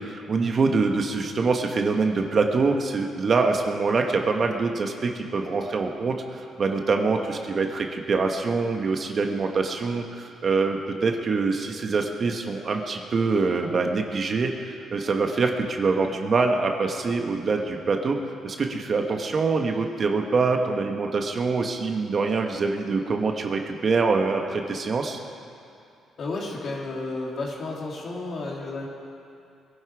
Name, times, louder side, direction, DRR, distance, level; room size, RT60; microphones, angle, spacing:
voice 1, 0.1-18.2 18.4-25.2, right 4 dB, 45° right, 3 dB, 1.4 m, -25 dB
voice 2, 26.2-28.9, left 2 dB, 55° left, -2 dB, 3.0 m, -32 dB
22.0 x 11.0 x 4.8 m, 2.5 s
cardioid pair, 90°, 0 cm